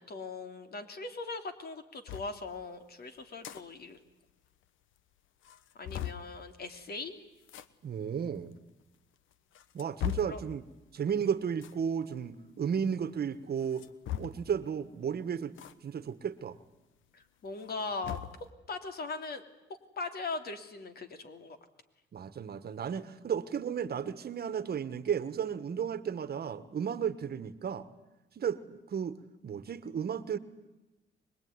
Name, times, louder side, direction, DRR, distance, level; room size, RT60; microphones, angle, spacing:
voice 1, 0.1-4.0 5.8-7.2 10.2-10.4 17.1-18.2 18.7-19.4 20.0-21.6, left 3 dB, 50° left, 7 dB, 3.1 m, -40 dB
sound 1, 2.1-2.3 3.2-3.6 4.0-4.1 4.3-4.4 5.0-5.1 5.4-6.3 7.4-7.7 8.5-8.6 9.3-10.4 11.5-11.8 13.6-14.5 15.6-15.7 16.1-16.2 17.5-18.4, left 12 dB, 80° left, 1.2 m, -39 dB
voice 2, 7.8-8.5 9.7-10.6 10.9-13.9 14.2-15.6 15.8-16.6 22.1-27.9 28.3-29.2 29.4-30.4, right 7 dB, 50° right, 14 dB, 1.5 m, -33 dB
25.0 x 21.0 x 9.7 m, 1.0 s
cardioid pair, 90°, 20 cm